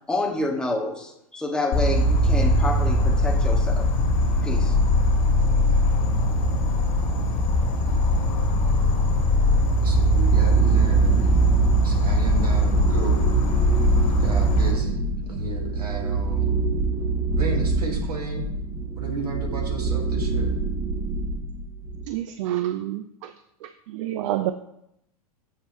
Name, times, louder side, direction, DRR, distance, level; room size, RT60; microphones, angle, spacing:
voice 1, 0.1-3.9 4.4-4.8, left 2 dB, 5° left, 1.1 m, -28 dB
Insect, 1.7-14.7, equal, 40° left, 1.7 m, -20 dB
voice 2, 9.7-11.3 11.8-13.3 14.2-16.5 17.3-18.5 19.0-20.5, right 3 dB, 85° right, 1.5 m, -33 dB
sound 1, 10.3-22.0, right 3 dB, 25° right, 0.8 m, -26 dB
voice 3, 22.1-23.3 23.6-24.5, right 13 dB, 55° right, 0.4 m, -28 dB
7.5 x 5.2 x 3.0 m
hypercardioid pair, 100°, 19 cm